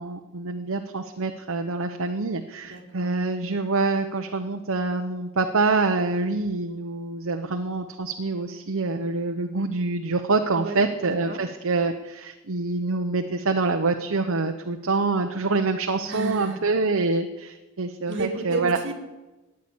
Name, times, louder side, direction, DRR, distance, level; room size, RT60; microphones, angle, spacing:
voice 1, 0.0-18.8, right 3 dB, 70° right, 5 dB, 0.9 m, -26 dB
voice 2, 2.6-3.1 10.5-11.4 16.1-16.6 18.0-18.9, right 3 dB, 50° right, 1 dB, 2.5 m, -32 dB
14.0 x 9.7 x 8.6 m, 1.1 s
head